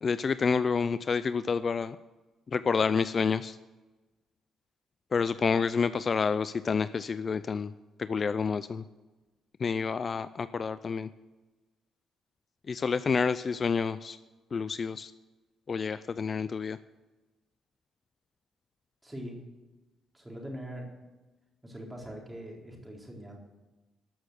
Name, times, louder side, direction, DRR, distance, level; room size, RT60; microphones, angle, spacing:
voice 1, 0.0-2.0 2.5-3.6 5.1-7.7 8.0-8.8 9.6-11.1 12.7-14.2 14.5-15.1 15.7-16.8, left 5 dB, 40° left, 14 dB, 0.4 m, -29 dB
voice 2, 19.0-19.4 20.1-20.9 21.6-23.4, equal, 10° right, -1 dB, 3.9 m, -42 dB
13.5 x 6.4 x 9.2 m, 1.2 s
cardioid pair, 90°, 0 cm